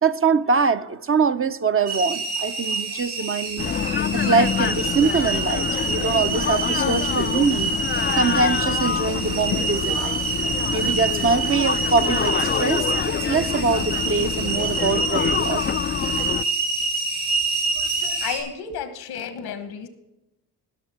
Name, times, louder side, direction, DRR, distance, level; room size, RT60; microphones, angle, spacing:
voice 1, 0.0-3.8 4.1-7.7 8.2-15.8 17.8-18.2, right 5 dB, 35° right, 0.7 m, -23 dB
sound 1, 1.9-18.4, right 4 dB, 90° right, 4.6 m, -27 dB
sound 2, 3.6-16.4, left 8 dB, 30° left, 0.4 m, -26 dB
voice 2, 18.2-19.9, left 7 dB, 85° left, 1.4 m, -32 dB
19.0 x 6.6 x 4.3 m
supercardioid pair, 55°, 38 cm